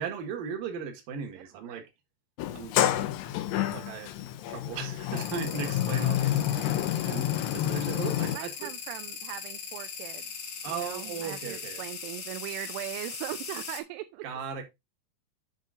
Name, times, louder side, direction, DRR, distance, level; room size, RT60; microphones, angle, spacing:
voice 1, 0.0-1.9 2.5-2.8 3.5-4.2 4.5-6.7 7.0-8.7 10.6-11.8 14.2-14.6, right 6 dB, 60° right, 3.0 m, -37 dB
Sliding door, 2.4-8.4, left 12 dB, 85° left, 2.9 m, -29 dB
sound 1, 5.1-13.8, left 6 dB, 70° left, 1.3 m, -39 dB
voice 2, 8.2-10.3 10.7-14.2, right 15 dB, 80° right, 2.6 m, -40 dB
8.7 x 5.4 x 3.8 m
omnidirectional pair, 4.9 m